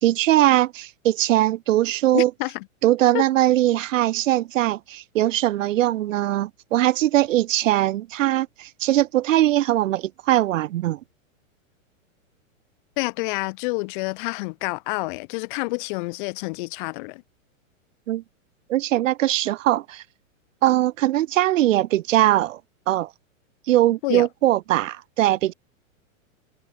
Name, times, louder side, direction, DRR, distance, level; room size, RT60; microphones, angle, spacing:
voice 1, 0.0-2.3 2.8-11.0 18.1-18.2 18.7-20.0 20.6-22.6 22.9-23.1 23.7-25.5, right 14 dB, 70° right, 1.0 m, -21 dB
voice 2, 2.1-2.6 3.1-3.2 13.0-17.2 24.0-24.3, left 27 dB, 40° left, 1.7 m, -28 dB
supercardioid pair, 155°, 40 cm